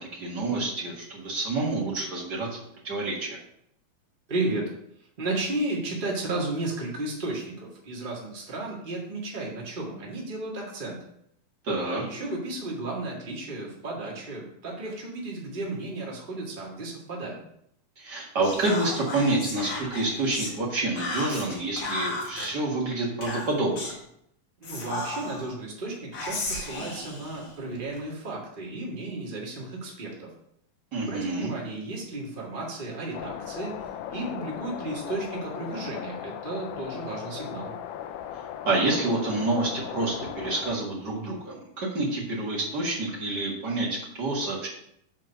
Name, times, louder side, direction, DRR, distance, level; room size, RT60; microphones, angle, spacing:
voice 1, 0.0-3.4 11.6-12.0 18.0-23.9 30.9-31.5 38.6-44.7, right 2 dB, 45° right, -4 dB, 1.4 m, -28 dB
voice 2, 4.3-4.7 5.2-11.0 11.8-17.4 24.6-30.3 31.0-33.7 34.1-37.7, right 2 dB, 80° right, -3 dB, 0.4 m, -33 dB
Whispering, 18.4-20.6 21.0-22.5 23.2-24.0 24.6-25.5 26.1-28.0, left 2 dB, 65° left, 3.3 m, -35 dB
sound 1, 33.1-40.8, left 10 dB, 85° left, 1.8 m, -37 dB
7.4 x 4.6 x 6.6 m, 0.73 s
omnidirectional pair, 4.3 m